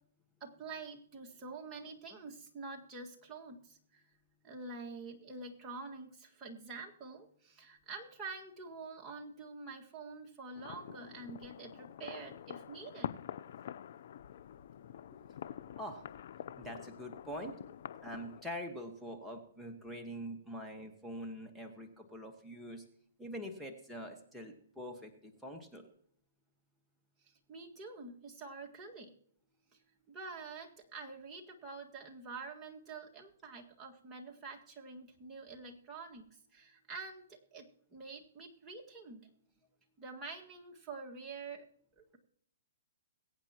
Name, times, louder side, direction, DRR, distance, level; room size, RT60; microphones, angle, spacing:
voice 1, 0.4-4.0 4.4-13.2 27.5-29.1 30.1-36.2 36.5-39.2 40.0-41.7 42.0-42.2, right 4 dB, 20° right, 0 dB, 1.8 m, -47 dB
sound 1, 10.6-18.4, left 9 dB, 55° left, 0.6 m, -46 dB
voice 2, 16.6-17.6 18.0-22.8 23.2-25.9, equal, ahead, 1 dB, 1.4 m, -44 dB
22.5 x 8.8 x 2.9 m, 0.66 s
hypercardioid pair, 140°, 0 cm